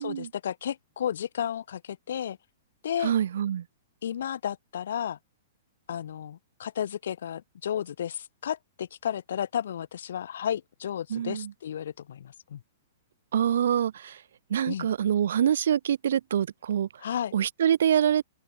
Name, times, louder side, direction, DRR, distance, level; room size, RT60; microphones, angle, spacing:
voice 1, 0.0-2.4 2.8-3.1 4.0-5.2 5.9-12.6 14.7-14.9 17.0-17.3, left 9 dB, 75° left, 1.2 m, -33 dB
voice 2, 3.0-3.6 11.1-11.5 13.3-14.2 14.5-16.9 17.3-18.2, right 9 dB, 75° right, 0.4 m, -25 dB
open air
hypercardioid pair, 150°, 0 cm